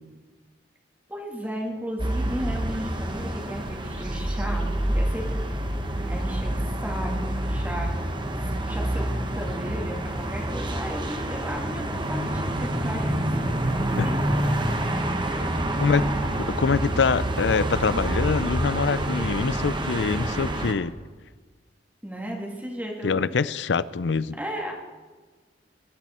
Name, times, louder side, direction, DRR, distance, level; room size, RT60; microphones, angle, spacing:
voice 1, 1.1-4.6 4.9-5.4 6.1-6.6 6.8-7.9 8.3-9.1 9.4-13.3 13.9-14.1 16.0-16.1 22.0-23.4 24.4-24.7, equal, 10° right, -1 dB, 2.0 m, -34 dB
sound 1, 2.0-20.7, right 1 dB, 25° right, 1.2 m, -27 dB
voice 2, 16.4-20.9 23.0-24.4, left 5 dB, 80° left, 18 dB, 0.5 m, -25 dB
22.0 x 11.5 x 4.3 m, 1.4 s
head